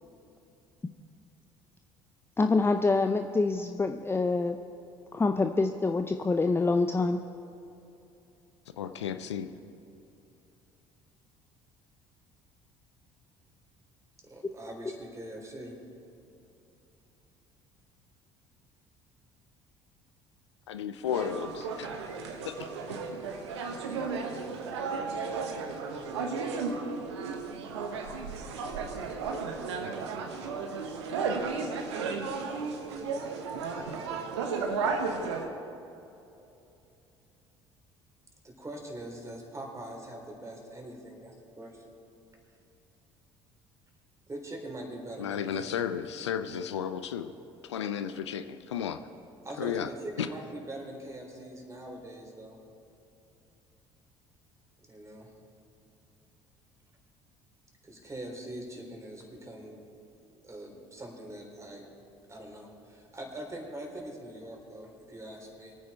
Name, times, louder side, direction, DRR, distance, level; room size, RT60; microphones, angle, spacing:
voice 1, 2.4-4.6 5.1-7.2, left 3 dB, 15° left, 7 dB, 0.6 m, -26 dB
voice 2, 8.8-9.5 20.7-22.2 22.4-22.7 45.2-47.3 47.6-49.0 49.6-49.9 50.2-50.3, left 8 dB, 85° left, 10 dB, 0.5 m, -33 dB
voice 3, 14.2-15.8 38.4-41.9 44.3-45.7 49.4-52.6 54.9-55.3 57.8-59.8 60.4-61.9 62.3-65.8, right 1 dB, 20° right, 0 dB, 4.1 m, -42 dB
sound 1, 21.1-35.5, right 4 dB, 80° right, 1.2 m, -34 dB
23.0 x 9.4 x 4.4 m, 2.8 s
hypercardioid pair, 60°, 14 cm